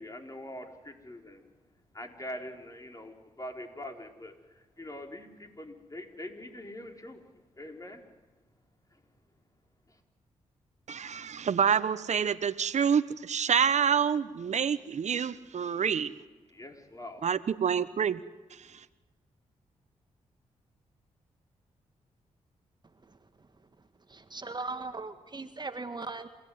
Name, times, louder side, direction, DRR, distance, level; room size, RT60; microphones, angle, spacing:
voice 1, 0.0-1.4 1.9-7.2 7.6-8.0 8.9-9.0 9.9-10.0 15.6-15.8 16.5-17.3, left 1 dB, 25° left, 4 dB, 4.6 m, -44 dB
voice 2, 10.9-16.1 17.2-18.2 18.5-18.8, right 7 dB, 65° right, 14 dB, 1.2 m, -27 dB
voice 3, 24.1-26.3, right 3 dB, 35° right, 8 dB, 1.7 m, -38 dB
28.0 x 17.0 x 9.6 m, 1.2 s
supercardioid pair, 50°, 13 cm